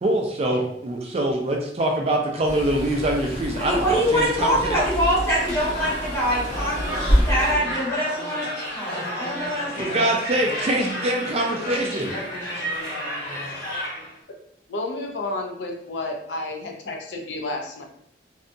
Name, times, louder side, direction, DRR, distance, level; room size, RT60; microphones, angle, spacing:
voice 1, 0.0-4.8 9.8-12.1, right 1 dB, 35° right, 1 dB, 0.4 m, -24 dB
sound 1, 2.5-7.5, equal, 40° left, 0.6 m, -27 dB
voice 2, 3.6-9.7 10.0-10.2, equal, 15° left, -8 dB, 1.1 m, -24 dB
sound 2, 5.4-14.2, equal, 60° left, 1.0 m, -32 dB
voice 3, 14.7-17.8, left 2 dB, 85° left, 1 dB, 0.5 m, -31 dB
2.6 x 2.3 x 2.5 m, 0.71 s
head